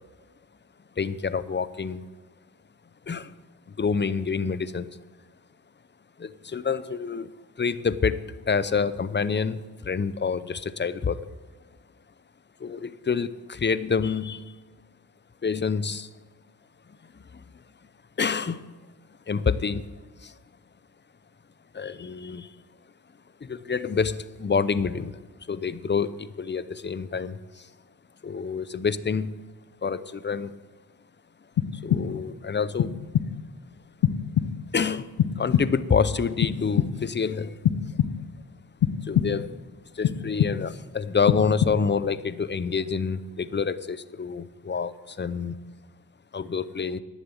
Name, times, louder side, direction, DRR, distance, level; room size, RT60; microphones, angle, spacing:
voice 1, 1.0-2.0 3.1-3.3 3.7-4.9 6.2-7.3 7.6-11.3 12.6-14.5 15.4-16.1 17.3-17.4 18.2-18.7 19.3-19.9 20.2-20.3 21.7-22.5 23.4-25.2 25.5-27.7 28.2-29.3 29.8-30.5 31.7-32.9 34.7-35.1 35.4-37.6 39.0-39.6 39.9-45.6 46.3-47.0, left 5 dB, 30° left, 15 dB, 0.7 m, -27 dB
sound 1, 31.6-32.4 32.8-33.5 34.0-34.8 35.2-36.0 36.4-37.2 37.6-38.4 38.8-39.6 40.0-40.9 41.3-42.1, left 9 dB, 75° left, 0.6 m, -26 dB
11.0 x 7.2 x 8.2 m, 1.3 s
cardioid pair, 45°, 38 cm